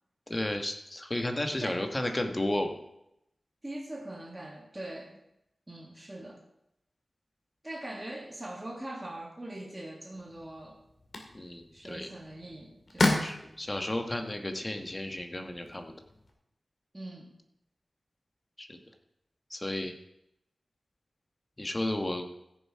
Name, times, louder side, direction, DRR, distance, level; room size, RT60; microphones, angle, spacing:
voice 1, 0.3-2.8 11.3-12.1 13.2-15.9 18.6-18.8 19.5-19.9 21.6-22.3, left 1 dB, 20° left, 5 dB, 1.3 m, -33 dB
voice 2, 3.6-5.2 5.7-6.4 7.6-10.8 11.7-13.2 16.9-17.3, right 1 dB, 20° right, -2 dB, 1.9 m, -42 dB
sound 1, 10.1-16.3, left 2 dB, 60° left, 2.2 m, -35 dB
15.5 x 7.0 x 4.8 m, 0.81 s
wide cardioid pair, 110°, 0 cm